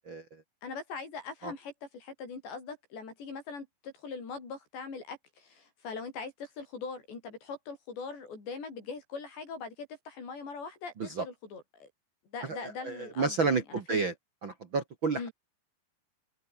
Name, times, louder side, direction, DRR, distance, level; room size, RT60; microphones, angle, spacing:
voice 1, 0.6-11.9 12.3-14.0 15.2-15.3, left 4 dB, 65° left, 9.0 m, -41 dB
voice 2, 12.5-14.1 14.4-15.3, right 4 dB, 60° right, 1.2 m, -31 dB
open air
omnidirectional pair, 5.3 m